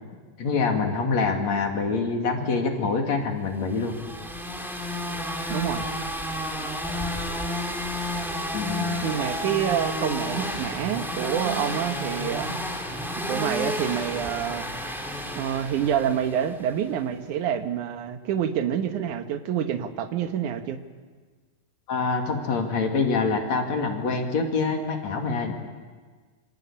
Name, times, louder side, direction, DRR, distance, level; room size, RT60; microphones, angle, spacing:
voice 1, 0.4-4.0 8.5-8.9 21.9-25.5, left 4 dB, 45° left, 3 dB, 3.2 m, -25 dB
sound 1, 3.7-16.6, equal, ahead, 2.4 m, -31 dB
voice 2, 5.5-5.9 9.0-12.6 13.3-14.7 15.3-20.8, right 9 dB, 60° right, 7 dB, 2.3 m, -27 dB
27.0 x 24.5 x 8.7 m, 1.5 s
omnidirectional pair, 4.7 m